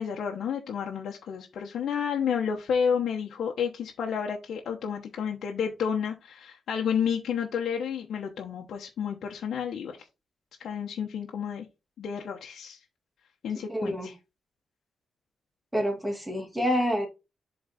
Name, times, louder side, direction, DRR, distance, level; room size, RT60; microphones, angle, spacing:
voice 1, 0.0-10.0 10.6-11.6 12.0-12.8 13.4-14.1, left 7 dB, 75° left, 1.1 m, -30 dB
voice 2, 13.7-14.1 15.7-17.1, equal, 5° right, 2.3 m, -27 dB
7.7 x 4.0 x 4.0 m
cardioid pair, 120°, 0 cm